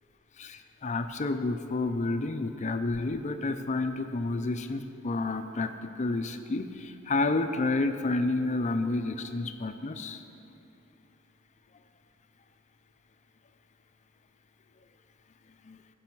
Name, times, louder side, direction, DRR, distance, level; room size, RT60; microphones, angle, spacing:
voice 1, 0.4-10.2 15.6-15.8, left 2 dB, 35° left, 8 dB, 0.5 m, -30 dB
16.0 x 5.4 x 6.1 m, 2.8 s
head